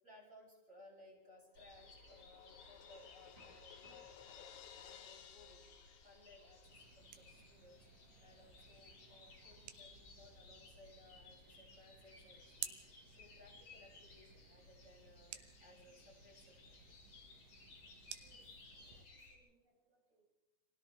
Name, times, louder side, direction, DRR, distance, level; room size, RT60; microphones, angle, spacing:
voice 1, 0.0-5.7 6.0-7.9 8.2-16.8, left 1 dB, 15° right, -3 dB, 8.1 m, -63 dB
Crash cymbal, 1.3-7.0, left 9 dB, 80° left, 3.8 m, -59 dB
sound 1, 1.6-19.4, left 3 dB, 45° left, 6.9 m, -61 dB
voice 2, 3.4-4.3 18.2-18.4 18.8-20.2, right 1 dB, 45° right, -2 dB, 8.0 m, -70 dB
sound 2, 6.7-19.1, right 11 dB, 85° right, 3.6 m, -56 dB
30.0 x 24.0 x 3.6 m, 1.0 s
omnidirectional pair, 5.2 m